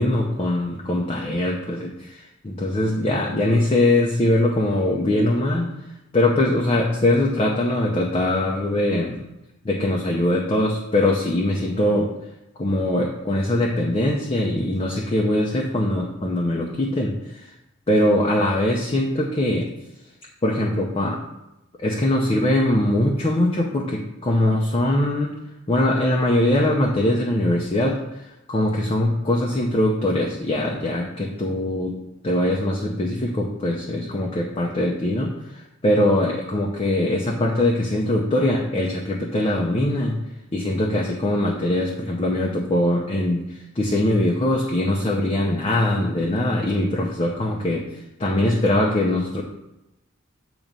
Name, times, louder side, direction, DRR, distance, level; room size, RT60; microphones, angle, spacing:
voice 1, 0.0-2.2 2.4-5.7 6.1-9.2 9.6-12.1 12.6-17.5 17.9-19.7 20.4-21.2 21.8-25.3 25.7-32.0 32.2-40.2 40.5-47.9 48.2-49.4, left 1 dB, 30° left, -2 dB, 0.6 m, -22 dB
7.4 x 3.0 x 5.2 m, 0.92 s
head